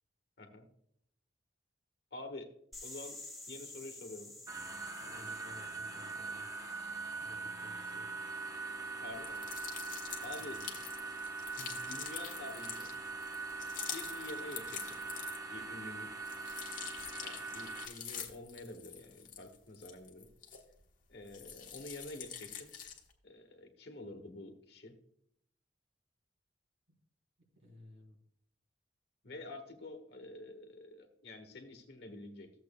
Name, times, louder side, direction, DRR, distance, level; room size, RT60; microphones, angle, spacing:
voice 1, 2.1-2.5 2.8-3.2 3.5-4.3 9.0-9.5 10.2-10.6 11.6-12.9 13.9-15.0 15.5-16.1 17.2-20.3 21.1-22.7 23.2-24.9 29.2-32.5, left 2 dB, 60° left, 5 dB, 1.4 m, -48 dB
sound 1, 2.7-7.5, left 2 dB, ahead, 1.9 m, -51 dB
sound 2, 4.5-17.9, right 3 dB, 15° right, 0.8 m, -42 dB
voice 2, 5.0-6.8 7.2-8.1 10.4-10.8 27.5-28.2, equal, 75° right, 0 dB, 3.3 m, -56 dB
sound 3, 9.2-15.6 16.0-20.9 21.2-23.1, left 8 dB, 45° left, 1.3 m, -46 dB
14.5 x 7.7 x 2.2 m, 0.70 s
head